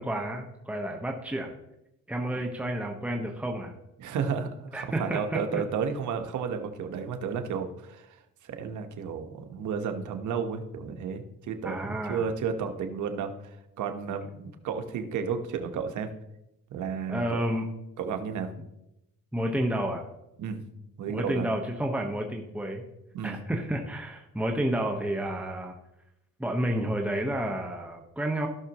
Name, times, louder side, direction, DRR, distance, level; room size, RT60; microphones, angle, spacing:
voice 1, 0.0-1.5 2.1-3.7 4.7-5.6 11.6-12.3 17.1-17.6 19.3-20.0 21.1-22.8 23.2-25.8 26.4-28.5, right 1 dB, 5° right, 2 dB, 1.1 m, -30 dB
voice 2, 4.0-16.1 16.7-17.4 18.0-18.5 20.4-20.6 21.0-21.5 23.1-23.4, right 6 dB, 75° right, 6 dB, 1.3 m, -32 dB
15.5 x 6.3 x 3.0 m, 0.87 s
cardioid pair, 90°, 30 cm